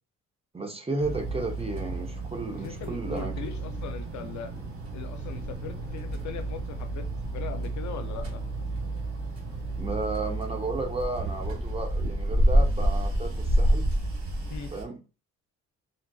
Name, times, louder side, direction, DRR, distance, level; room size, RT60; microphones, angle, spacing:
voice 1, 0.5-3.3 9.8-13.9 14.7-15.0, right 3 dB, 20° right, 0.7 m, -33 dB
sound 1, 1.0-14.8, right 1 dB, 45° right, 1.1 m, -29 dB
voice 2, 2.5-4.5 4.9-7.1 7.3-8.4 14.5-14.7, left 7 dB, 70° left, 0.5 m, -40 dB
3.7 x 2.4 x 2.3 m
cardioid pair, 90°, 30 cm